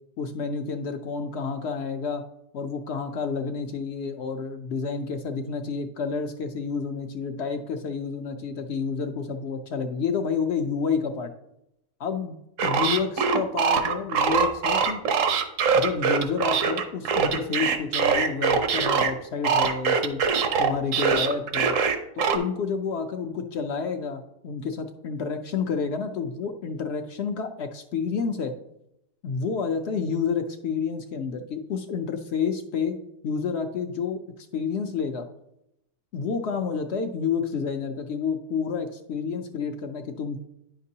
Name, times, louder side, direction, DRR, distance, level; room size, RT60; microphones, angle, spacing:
voice 1, 0.2-2.2 2.5-11.3 12.0-15.0 15.7-20.2 20.6-21.8 22.2-28.5 29.2-33.0 33.2-34.2 34.5-35.2 36.1-40.4, left 5 dB, 65° left, 6 dB, 0.7 m, -29 dB
sound 1, 12.6-19.1 19.4-22.4, right 6 dB, 70° right, 1.0 m, -23 dB
9.4 x 5.9 x 2.7 m, 0.82 s
omnidirectional pair, 1.4 m